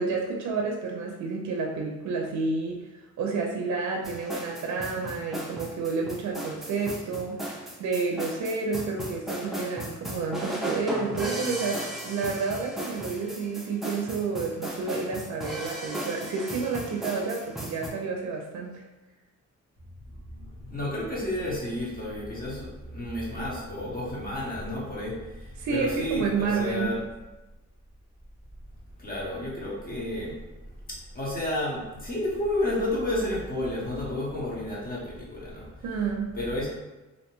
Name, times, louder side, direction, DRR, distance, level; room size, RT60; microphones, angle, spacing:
voice 1, 0.0-7.4 7.8-18.8 25.6-27.0 35.8-36.4, right 4 dB, 75° right, 0 dB, 0.5 m, -30 dB
sound 1, 4.0-17.9, right 1 dB, ahead, 0.4 m, -36 dB
voice 2, 20.1-27.0 29.0-35.8 36.3-36.7, left 1 dB, 30° left, -5 dB, 0.9 m, -31 dB
2.6 x 2.1 x 2.9 m, 1.1 s
cardioid pair, 125°, 29 cm